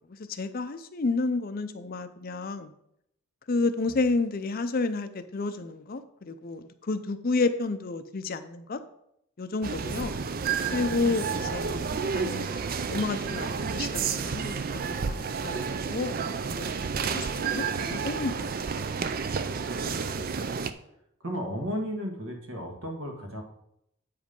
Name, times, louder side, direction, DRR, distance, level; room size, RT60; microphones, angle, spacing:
voice 1, 0.0-2.7 3.5-8.8 9.4-10.2 10.7-12.6 12.9-18.9, left 3 dB, 40° left, 10 dB, 0.5 m, -31 dB
sound 1, 9.6-20.7, right 5 dB, 40° right, 0.4 m, -31 dB
voice 2, 11.3-11.8 19.8-20.4 21.2-23.4, equal, 65° right, 2 dB, 1.7 m, -35 dB
8.5 x 5.1 x 5.3 m, 0.77 s
head